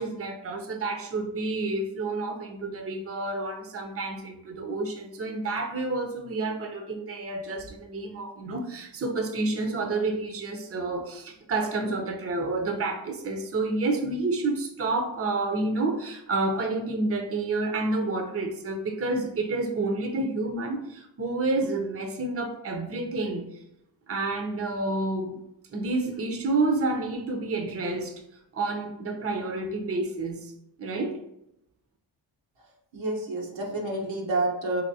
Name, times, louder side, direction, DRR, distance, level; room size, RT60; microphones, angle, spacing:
voice 1, 0.0-23.6 24.1-25.4 25.7-28.2 28.5-30.5 30.8-31.2, right 2 dB, 30° right, 4 dB, 0.6 m, -29 dB
voice 2, 32.9-34.8, right 2 dB, 90° right, -1 dB, 1.1 m, -29 dB
4.1 x 2.9 x 2.7 m, 0.81 s
cardioid pair, 65°, 44 cm